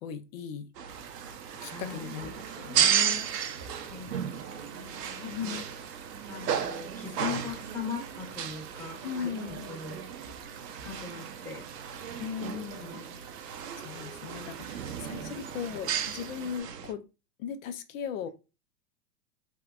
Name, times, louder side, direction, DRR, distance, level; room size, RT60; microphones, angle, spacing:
voice 1, 0.0-0.7 1.6-3.3 5.3-5.8 9.0-9.7 12.2-13.1 13.8-17.0 17.4-18.3, left 8 dB, 55° left, 10 dB, 0.7 m, -38 dB
sound 1, 0.8-16.9, right 8 dB, 85° right, 0.6 m, -34 dB
sound 2, 0.9-16.6, right 8 dB, 30° right, 0.5 m, -49 dB
voice 2, 1.7-2.1 3.8-5.5 6.3-10.0 10.7-11.7 12.8-13.2 14.4-14.5 15.1-15.3, left 6 dB, 5° left, -1 dB, 1.0 m, -41 dB
3.4 x 2.8 x 2.4 m, 0.28 s
hypercardioid pair, 115°, 47 cm